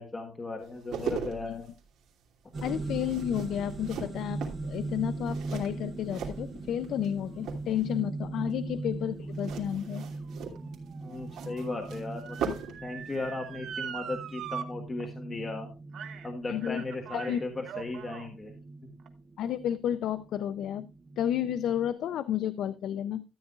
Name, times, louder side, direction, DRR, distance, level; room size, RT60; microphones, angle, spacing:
voice 1, 0.0-1.7 11.0-12.5 12.8-15.7 16.2-18.5, left 2 dB, 20° left, 2 dB, 1.4 m, -36 dB
sound 1, 0.6-7.1 7.4-8.0 9.3-12.8 13.1-13.3, right 6 dB, 70° right, 2.9 m, -39 dB
sound 2, 2.5-21.9, right 3 dB, 25° right, 1.2 m, -40 dB
voice 2, 2.6-10.0 16.5-16.8 17.1-17.4 19.4-20.9 21.2-23.2, left 10 dB, 65° left, 13 dB, 0.5 m, -31 dB
Motor vehicle (road) / Siren, 9.4-14.6 15.0-15.1 15.9-16.3 16.6-18.3 19.0-19.1, right 8 dB, 55° right, 1.2 m, -42 dB
13.5 x 9.8 x 2.4 m, 0.28 s
cardioid pair, 165°, 0 cm